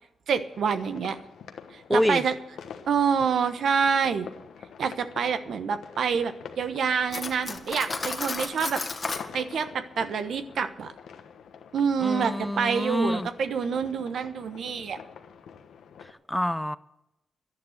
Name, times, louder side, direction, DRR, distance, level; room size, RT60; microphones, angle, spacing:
voice 1, 0.3-1.2 1.7-2.3 2.9-4.3 4.8-8.8 9.3-10.9 11.7-15.0, right 6 dB, 75° right, 1.1 m, -27 dB
sound 1, 0.5-16.1, left 7 dB, 80° left, 1.2 m, -46 dB
voice 2, 1.9-2.2 12.0-13.3 16.0-16.8, left 1 dB, 5° left, 0.6 m, -27 dB
Cutlery silverware, 7.1-9.3, left 3 dB, 40° left, 1.6 m, -32 dB
11.5 x 10.5 x 8.0 m
cardioid pair, 60°, 0 cm